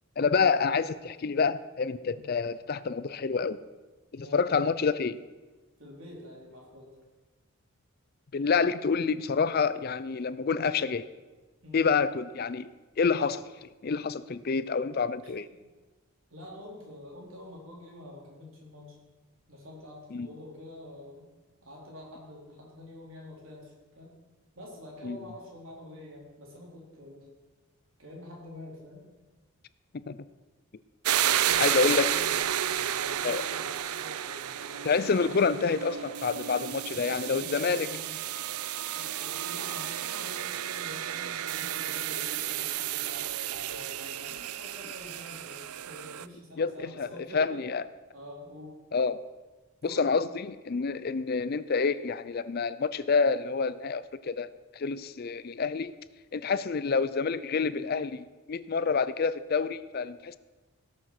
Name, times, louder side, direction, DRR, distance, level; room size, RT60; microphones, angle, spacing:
voice 1, 0.2-3.6 4.1-5.2 8.3-11.1 11.7-12.7 13.0-15.5 20.1-20.3 25.0-25.2 30.1-30.2 31.6-32.1 33.2-33.4 34.8-37.9 46.6-47.8 48.9-49.2 49.8-54.5 54.7-55.9 56.3-60.4, left 5 dB, 45° left, 15 dB, 0.4 m, -28 dB
voice 2, 4.2-4.5 5.8-6.9 11.6-11.9 15.2-15.6 16.3-19.0 19.5-21.3 21.6-24.1 24.6-27.3 28.0-29.1 31.4-32.3 32.6-34.9 36.9-38.1 38.8-47.6 48.1-48.8 49.8-50.2, left 1 dB, 65° right, -2 dB, 4.1 m, -47 dB
sound 1, 31.0-46.3, right 11 dB, 90° right, 0.5 m, -32 dB
17.0 x 7.4 x 6.0 m, 1.2 s
head